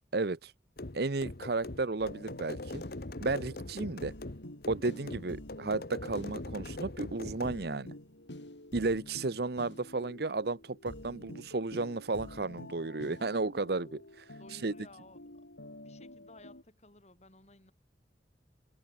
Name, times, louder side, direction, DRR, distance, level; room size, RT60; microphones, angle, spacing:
voice 1, 0.1-0.5 0.9-2.8 3.2-4.1 4.7-7.9 8.7-14.2 14.5-14.7, right 3 dB, 60° right, 0.8 m, -33 dB
sound 1, 0.8-7.6, left 2 dB, 55° left, 1.3 m, -42 dB
sound 2, 2.0-16.6, left 1 dB, 85° left, 5.1 m, -49 dB
voice 2, 14.4-15.3 15.8-17.7, left 2 dB, 40° left, 5.1 m, -56 dB
head